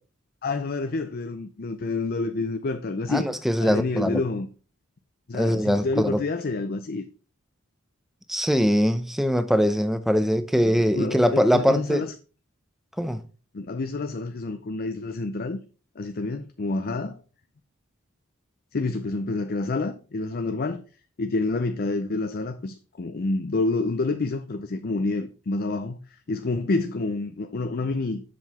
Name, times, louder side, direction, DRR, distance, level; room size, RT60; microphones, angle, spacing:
voice 1, 0.4-3.3 3.6-4.5 5.3-7.0 10.6-12.1 13.5-15.6 16.0-17.2 18.7-20.8 21.2-26.0 26.3-28.2, left 3 dB, 45° left, 0.5 m, -28 dB
voice 2, 3.1-4.2 5.3-6.2 8.3-12.1 13.0-13.2, equal, ahead, 0.6 m, -22 dB
7.5 x 5.9 x 4.2 m
head